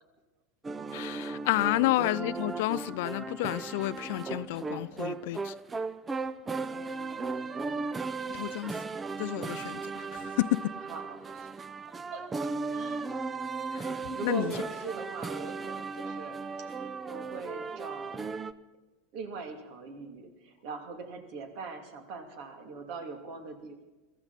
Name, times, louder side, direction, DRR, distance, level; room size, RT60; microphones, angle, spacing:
sound 1, 0.6-18.5, right 4 dB, 20° right, 0.7 m, -36 dB
voice 1, 0.9-5.5 8.3-8.8 9.2-10.8 13.7-13.9 14.2-14.5, left 18 dB, 60° left, 0.4 m, -30 dB
voice 2, 6.7-7.9 10.9-13.0 14.1-16.7 17.0-18.3 19.1-23.8, right 4 dB, 55° right, 2.9 m, -42 dB
23.0 x 14.5 x 4.2 m
hypercardioid pair, 90°, 0 cm